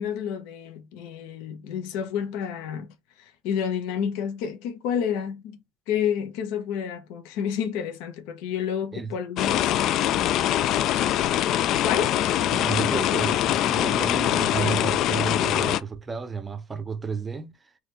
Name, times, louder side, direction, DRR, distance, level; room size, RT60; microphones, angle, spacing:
voice 1, 0.0-2.9 3.4-5.6 5.9-9.7 11.8-12.2, left 8 dB, 70° left, 1.0 m, -29 dB
sound 1, 9.4-15.8, left 12 dB, 50° left, 0.3 m, -23 dB
voice 2, 12.5-17.5, right 5 dB, 15° right, 0.6 m, -31 dB
4.0 x 3.1 x 3.2 m
cardioid pair, 140°, 0 cm